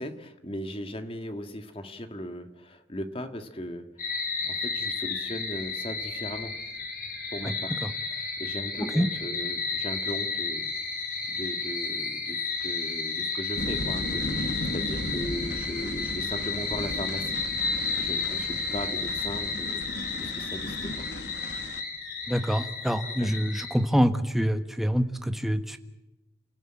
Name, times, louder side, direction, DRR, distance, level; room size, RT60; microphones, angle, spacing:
voice 1, 0.0-6.6 7.3-7.8 8.1-10.7 11.3-21.1 22.4-22.7 23.2-23.3, equal, 30° left, 8 dB, 1.7 m, -38 dB
sound 1, 4.0-23.7, left 4 dB, 50° left, 5.2 m, -32 dB
sound 2, 13.6-21.8, left 1 dB, 70° left, 1.5 m, -36 dB
voice 2, 22.3-25.8, equal, ahead, 8 dB, 1.2 m, -26 dB
29.5 x 16.0 x 8.8 m, 0.99 s
head